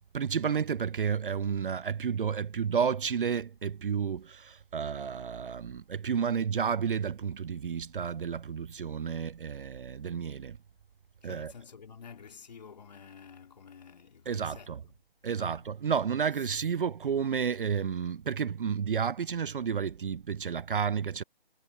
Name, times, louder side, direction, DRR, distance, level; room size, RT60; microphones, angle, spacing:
voice 1, 0.1-10.6 11.2-11.5 14.3-14.8 15.2-21.2, right 7 dB, 60° right, 0.4 m, -31 dB
voice 2, 11.2-14.9 15.4-15.6, left 6 dB, 45° left, 3.1 m, -50 dB
figure-of-eight pair, 165°, 31 cm